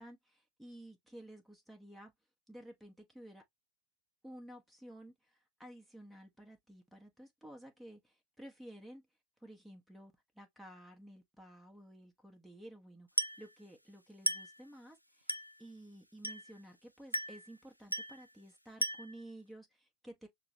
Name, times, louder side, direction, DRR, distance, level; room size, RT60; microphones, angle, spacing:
voice 1, 0.0-2.1 2.5-3.4 4.2-9.0 9.4-15.3 15.6-20.3, right 1 dB, ahead, 1.1 m, -53 dB
Glass, 13.2-13.5 14.3-14.6 15.3-15.6 16.2-16.6 17.1-17.5 17.9-18.2 18.8-19.2, equal, 90° right, 0.3 m, -36 dB
5.8 x 2.2 x 3.0 m
figure-of-eight pair, 90°, 0 cm